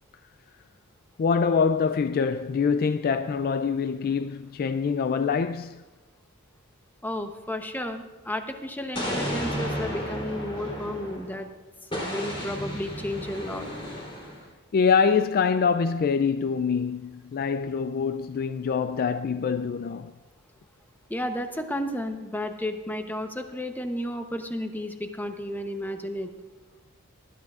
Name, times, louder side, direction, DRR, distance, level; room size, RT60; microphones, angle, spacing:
voice 1, 1.2-5.8 14.7-20.1, left 5 dB, 45° left, 0.3 m, -25 dB
voice 2, 7.0-11.5 11.9-13.7 21.1-26.3, left 1 dB, 10° left, 0.8 m, -32 dB
Explosion, 8.9-11.4 11.9-14.5, equal, 25° left, 3.3 m, -33 dB
19.5 x 12.0 x 2.4 m
head